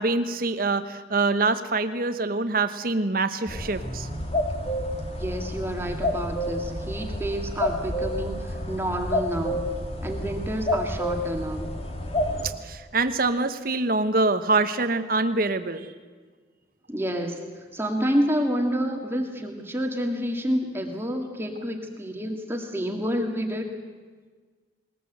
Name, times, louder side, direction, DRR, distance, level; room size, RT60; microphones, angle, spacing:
voice 1, 0.0-4.1 12.6-15.9, right 3 dB, 50° right, 10 dB, 1.2 m, -25 dB
sound 1, 3.5-12.5, left 1 dB, 35° left, 2.3 m, -29 dB
voice 2, 5.2-9.7 10.0-11.7 16.9-17.4 17.7-23.7, equal, 15° right, 3 dB, 1.9 m, -29 dB
20.5 x 20.5 x 8.0 m, 1.5 s
head